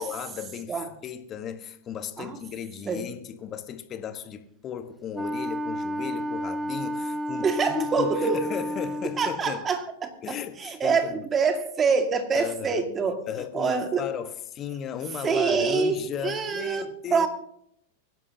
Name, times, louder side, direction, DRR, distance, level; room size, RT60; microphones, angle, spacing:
voice 1, 0.0-9.7 10.2-11.3 12.3-12.9 13.3-17.3, left 8 dB, 35° left, 1.3 m, -35 dB
Wind instrument woodwind instrument, 5.1-9.4, equal, 5° right, 0.6 m, -31 dB
voice 2, 7.4-8.4 9.2-13.2 13.5-14.0 15.2-16.0 16.2-16.8 17.1-17.3, right 5 dB, 25° right, 2.0 m, -25 dB
24.0 x 11.0 x 2.8 m
hypercardioid pair, 100°, 0 cm